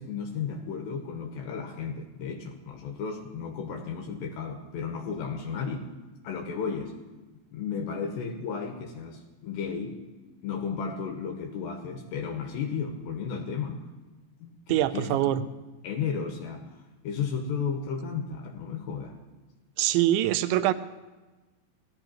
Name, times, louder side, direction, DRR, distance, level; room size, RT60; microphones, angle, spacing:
voice 1, 0.0-5.9 6.2-6.9 7.5-10.0 10.4-13.9 14.4-15.4 15.8-16.7 17.0-19.2, left 6 dB, 75° left, 2 dB, 3.1 m, -34 dB
voice 2, 14.7-15.4 19.8-20.7, right 14 dB, 85° right, 13 dB, 2.9 m, -24 dB
17.5 x 14.0 x 4.4 m, 1.2 s
omnidirectional pair, 5.3 m